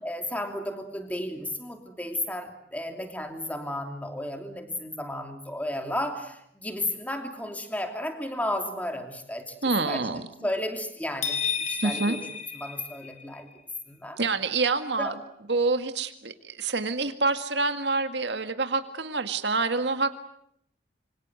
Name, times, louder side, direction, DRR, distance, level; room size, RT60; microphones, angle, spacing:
voice 1, 0.0-10.1 10.4-12.3 12.5-13.5 13.9-14.2 15.0-15.2, left 1 dB, 10° left, 5 dB, 2.9 m, -33 dB
voice 2, 9.6-10.2 11.8-12.2 14.2-15.1 15.5-20.2, right 3 dB, 75° right, 8 dB, 1.9 m, -27 dB
sound 1, 11.2-13.4, left 6 dB, 40° left, 4.0 m, -31 dB
26.5 x 26.0 x 7.8 m, 0.73 s
head